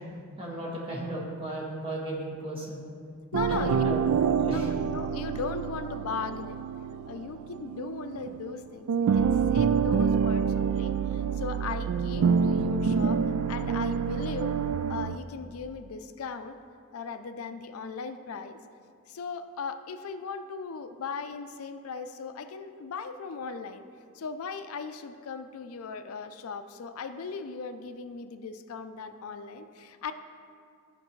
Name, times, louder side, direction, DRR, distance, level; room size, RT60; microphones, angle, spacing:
voice 1, 0.4-2.9 3.5-4.7, right 1 dB, 25° right, -4 dB, 1.5 m, -35 dB
voice 2, 3.3-4.1 4.5-6.6 7.1-13.2 13.5-14.6 14.9-16.6 16.9-18.6 19.1-23.8 24.1-30.1, left 5 dB, 80° left, 9 dB, 0.4 m, -38 dB
sound 1, 3.3-8.6 8.9-15.2, right 6 dB, 85° right, 0.3 m, -27 dB
13.5 x 5.2 x 3.1 m, 2.2 s
head